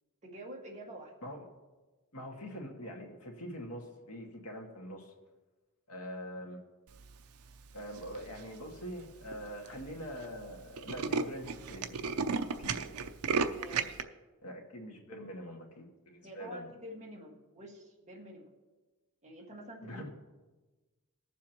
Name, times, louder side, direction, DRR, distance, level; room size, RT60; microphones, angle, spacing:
voice 1, 0.2-1.1 13.5-14.0 16.2-18.5 19.2-20.1, equal, 30° right, -2 dB, 1.8 m, -48 dB
voice 2, 2.1-5.1 5.9-6.6 7.7-12.0 12.3-12.8 14.4-16.7 19.8-20.1, equal, 80° left, 1 dB, 1.9 m, -44 dB
Tools, 8.0-8.4 9.0-9.1 9.3-9.4 9.7-9.9 10.2-10.3 10.5-14.0, right 5 dB, 75° right, 0.6 m, -33 dB
21.0 x 7.3 x 3.0 m, 1.2 s
head